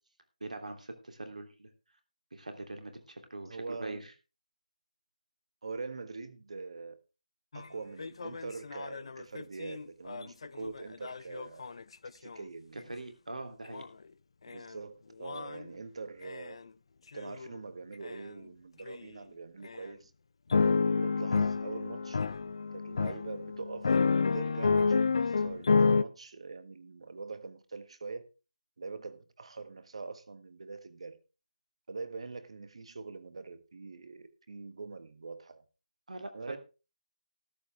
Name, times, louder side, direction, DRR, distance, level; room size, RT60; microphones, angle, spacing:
voice 1, 0.4-1.7 2.3-4.1 12.7-13.8 36.1-36.6, right 2 dB, 65° right, 3.0 m, -42 dB
voice 2, 3.5-4.0 5.6-7.0 7.5-11.6 12.2-12.9 14.5-16.6 17.1-20.1 20.9-22.2 22.7-28.2 28.8-31.2 31.9-35.6 36.3-36.6, right 4 dB, 50° right, 1.6 m, -43 dB
sound 1, 7.5-7.6 8.0-12.4 13.7-13.9 14.5-14.7 15.2-15.6 16.2-16.6 17.2-17.5 18.0-18.2 18.9-19.0 19.7-19.8 20.5-26.0, left 4 dB, 45° left, 0.6 m, -29 dB
13.5 x 12.0 x 3.5 m
figure-of-eight pair, 160°, 4 cm